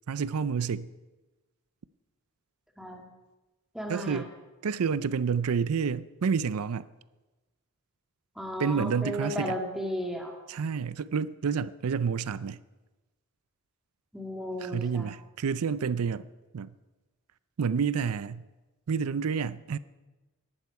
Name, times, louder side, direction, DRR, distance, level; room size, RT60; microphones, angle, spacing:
voice 1, 0.1-0.9 3.9-4.3 4.6-6.9 8.6-9.6 10.5-12.6 14.6-16.3 16.5-16.7 17.6-18.4 18.9-19.8, right 6 dB, 90° right, 0.5 m, -29 dB
voice 2, 3.7-4.2 8.4-10.4 14.1-15.1, equal, ahead, 2.0 m, -34 dB
19.0 x 11.5 x 4.8 m
head